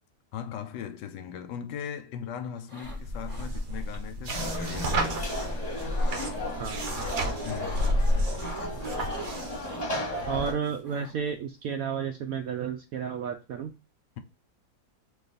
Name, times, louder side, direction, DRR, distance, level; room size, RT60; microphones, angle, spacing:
voice 1, 0.3-5.2 7.4-8.1, left 8 dB, 75° left, 1.2 m, -39 dB
sound 1, 2.6-3.0 3.2-3.9 4.8-6.3 6.6-7.9 8.4-11.3, equal, 20° right, 2.6 m, -44 dB
sound 2, 2.8-9.6, equal, 55° right, 1.3 m, -30 dB
Conversation / Crowd, 4.3-10.5, equal, 25° left, 1.2 m, -35 dB
voice 2, 10.2-13.7, right 7 dB, 75° right, 0.8 m, -32 dB
4.0 x 2.9 x 3.9 m
omnidirectional pair, 2.0 m